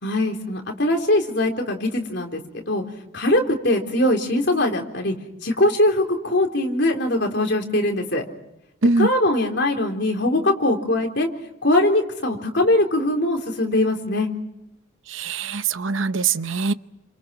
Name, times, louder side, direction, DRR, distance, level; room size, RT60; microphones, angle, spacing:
voice 1, 0.0-2.4 2.7-2.8 3.1-5.2 5.4-8.2 9.0-11.3 11.6-14.3, left 1 dB, 55° left, 3.9 m, -21 dB
voice 2, 8.8-9.1 15.1-16.7, right 4 dB, 65° right, 0.8 m, -22 dB
29.5 x 26.5 x 5.9 m
head